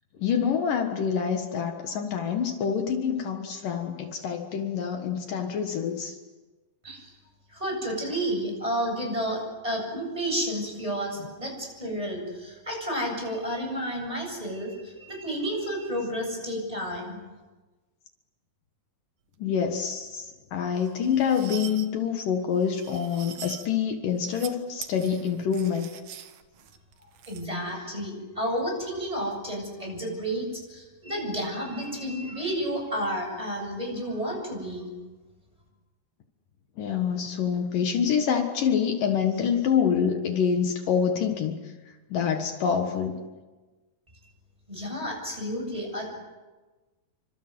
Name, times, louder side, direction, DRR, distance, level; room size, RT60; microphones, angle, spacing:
voice 1, 0.2-6.2 19.4-25.9 36.8-41.7 42.1-43.2, left 7 dB, 70° left, 4 dB, 3.1 m, -26 dB
voice 2, 7.5-17.2 27.3-34.9 44.7-46.1, equal, 10° right, 2 dB, 7.7 m, -31 dB
sound 1, 20.8-21.9 22.6-23.7 24.2-24.5 24.8-27.4, right 10 dB, 90° right, 3.4 m, -43 dB
29.0 x 26.0 x 7.9 m, 1.2 s
omnidirectional pair, 4.2 m